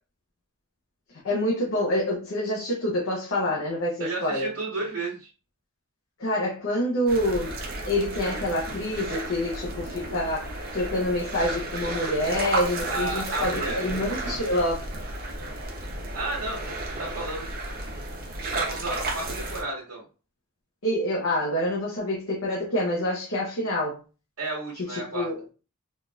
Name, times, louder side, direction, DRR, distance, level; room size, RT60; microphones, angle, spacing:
voice 1, 1.1-4.5 6.2-7.6 7.9-14.8 20.8-24.0 24.8-25.4, left 1 dB, 65° left, 0.8 m, -27 dB
voice 2, 4.0-5.3 12.9-13.8 16.1-16.6 17.0-17.5 18.4-20.0 24.4-25.3, right 2 dB, 70° right, 1.2 m, -32 dB
sound 1, 7.1-19.6, right 2 dB, 45° right, 0.6 m, -33 dB
3.6 x 2.5 x 2.3 m
head